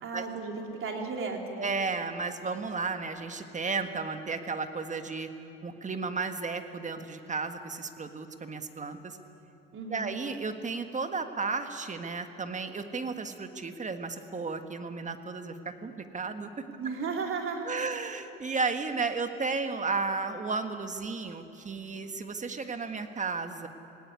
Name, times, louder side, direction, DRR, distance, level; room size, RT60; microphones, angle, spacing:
voice 1, 0.0-1.7 9.7-10.2 16.7-17.9, right 4 dB, 45° right, 1 dB, 3.8 m, -35 dB
voice 2, 1.6-5.3 5.6-9.2 9.9-16.6 17.6-23.7, right 4 dB, 25° right, 8 dB, 1.6 m, -33 dB
18.5 x 17.5 x 9.8 m, 2.9 s
hypercardioid pair, 80°, 30 cm